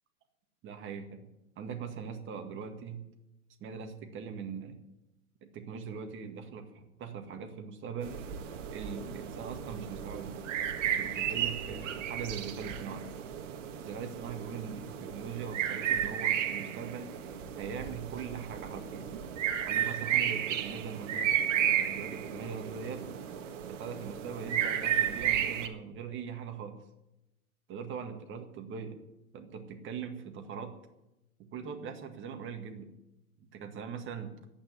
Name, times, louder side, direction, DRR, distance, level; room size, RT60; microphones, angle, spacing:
voice 1, 0.6-1.2 1.6-3.0 3.6-4.8 5.5-8.2 8.7-10.4 10.9-13.1 13.7-17.1 17.6-19.2 19.7-23.0 23.7-26.8 27.7-29.0 29.3-30.7 31.4-32.9 33.5-34.3, right 6 dB, 25° right, 5 dB, 1.9 m, -41 dB
sound 1, 8.0-25.7, right 10 dB, 55° right, 1.7 m, -33 dB
11.5 x 8.9 x 9.3 m, 0.92 s
hypercardioid pair, 115°, 44 cm